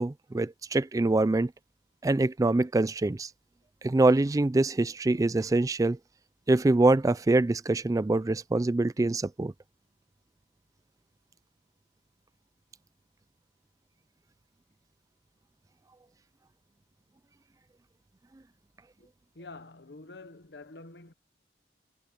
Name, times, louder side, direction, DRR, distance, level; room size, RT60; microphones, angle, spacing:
voice 1, 0.0-1.5 2.0-3.3 3.8-6.0 6.5-9.5, right 2 dB, 20° right, 0.4 m, -24 dB
voice 2, 19.4-21.1, left 3 dB, 70° left, 1.1 m, -47 dB
head